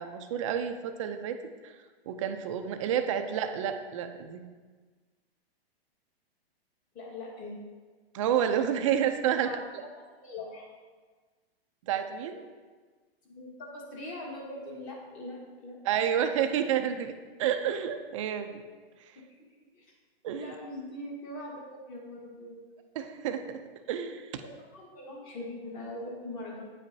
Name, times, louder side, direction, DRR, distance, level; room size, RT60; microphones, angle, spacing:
voice 1, 0.0-1.7 2.1-4.5 8.1-9.8 11.8-12.4 15.8-17.1 17.4-18.6 19.0-19.1 20.2-20.6 23.0-23.6 23.9-24.4, right 9 dB, 35° right, 8 dB, 0.4 m, -30 dB
voice 2, 6.9-7.6 9.2-9.6 9.9-10.7 13.3-15.8 19.7-19.9 20.3-22.6 24.4-26.6, left 1 dB, 25° left, -2 dB, 1.5 m, -42 dB
8.9 x 5.2 x 2.7 m, 1.4 s
hypercardioid pair, 145°, 31 cm